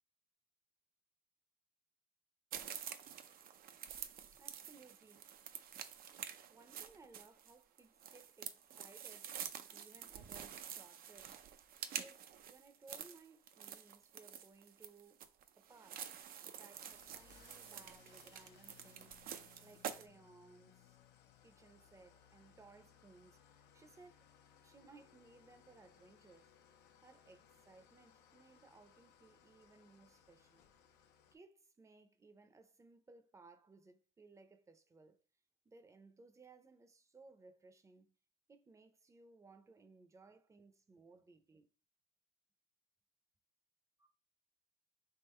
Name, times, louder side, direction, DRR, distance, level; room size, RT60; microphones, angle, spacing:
sound 1, 2.5-20.1, right 9 dB, 60° right, 0.5 m, -48 dB
voice 1, 4.3-5.3 6.5-9.4 9.7-11.4 11.9-15.3 15.6-21.0 21.4-24.3 24.6-26.5 27.0-30.6 31.3-35.2 35.6-38.1 38.5-41.7, right 3 dB, 20° right, 0.6 m, -62 dB
Engine starting / Idling, 16.7-31.3, left 8 dB, 80° left, 0.6 m, -66 dB
3.6 x 2.9 x 4.3 m
cardioid pair, 110°, 17 cm